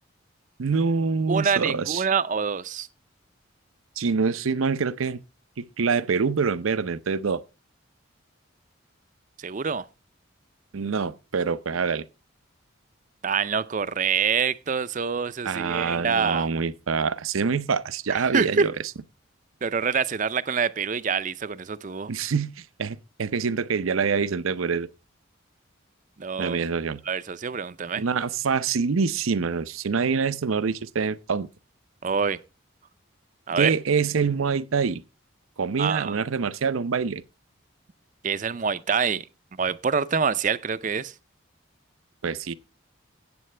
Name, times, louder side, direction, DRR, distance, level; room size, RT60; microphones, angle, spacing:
voice 1, 0.6-2.0 4.0-5.2 5.6-7.4 10.7-12.0 15.4-18.7 22.1-24.9 26.4-27.0 28.0-31.5 33.6-35.0 35.6-37.2 42.2-42.5, right 5 dB, 90° right, 0.6 m, -25 dB
voice 2, 1.3-2.9 9.4-9.8 13.2-16.5 18.1-18.7 19.6-22.1 26.2-26.6 27.1-28.0 32.0-32.4 33.5-33.7 35.8-36.2 38.2-39.3 39.6-41.1, right 6 dB, 40° right, 0.5 m, -26 dB
14.0 x 8.6 x 3.3 m
head